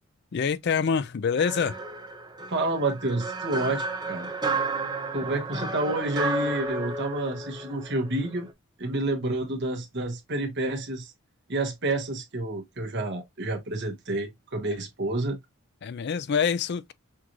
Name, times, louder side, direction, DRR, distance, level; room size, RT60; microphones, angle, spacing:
voice 1, 0.3-1.8 15.8-16.9, left 6 dB, 50° left, 0.4 m, -26 dB
sound 1, 1.4-8.5, right 3 dB, 20° right, 0.6 m, -32 dB
voice 2, 2.5-4.3 5.1-8.5 8.8-11.1 11.5-15.4, right 2 dB, 55° right, 1.3 m, -29 dB
6.0 x 2.5 x 3.0 m
head